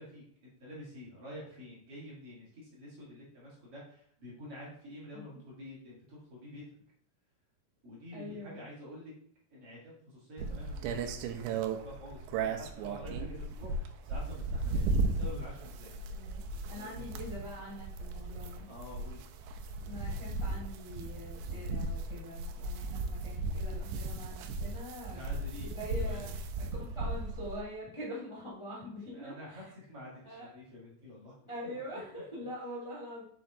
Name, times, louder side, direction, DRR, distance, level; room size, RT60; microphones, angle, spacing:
voice 1, 0.0-6.6 7.8-9.1 9.5-16.0 16.8-17.2 18.7-19.2 25.0-25.7 26.0-26.2 29.1-31.5, left 1 dB, 45° right, -6 dB, 2.2 m, -48 dB
voice 2, 8.1-8.6 16.1-18.7 19.8-25.3 25.6-26.4 26.9-29.6 30.2-30.5 31.5-33.2, equal, 40° left, -7 dB, 0.4 m, -44 dB
sound 1, 10.4-27.6, right 3 dB, 85° right, 2.7 m, -36 dB
6.9 x 4.4 x 3.7 m, 0.63 s
omnidirectional pair, 4.7 m